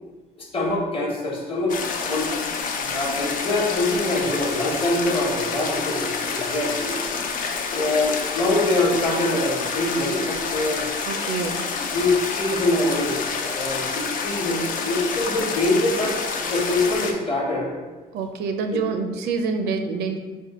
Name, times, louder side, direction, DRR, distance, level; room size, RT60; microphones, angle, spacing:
voice 1, 0.4-2.3 2.7-7.0 7.7-10.9 11.9-17.7 18.7-18.8, left 2 dB, 30° left, -2 dB, 1.0 m, -24 dB
sound 1, 1.7-17.1, left 5 dB, 55° left, 0.5 m, -28 dB
voice 2, 11.0-11.6 18.1-20.2, right 4 dB, 75° right, 6 dB, 0.4 m, -26 dB
4.4 x 2.1 x 4.1 m, 1.3 s
cardioid pair, 110°, 17 cm